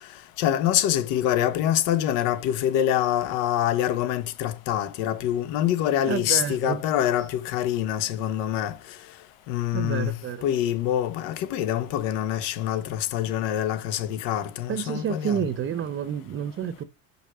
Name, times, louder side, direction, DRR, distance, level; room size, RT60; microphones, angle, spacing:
voice 1, 0.4-8.8 9.5-15.4, left 11 dB, 85° left, 1.3 m, -25 dB
voice 2, 6.1-6.8 7.2-7.3 9.7-10.5 14.7-16.8, right 8 dB, 40° right, 0.8 m, -29 dB
5.6 x 4.9 x 6.2 m
cardioid pair, 110°, 32 cm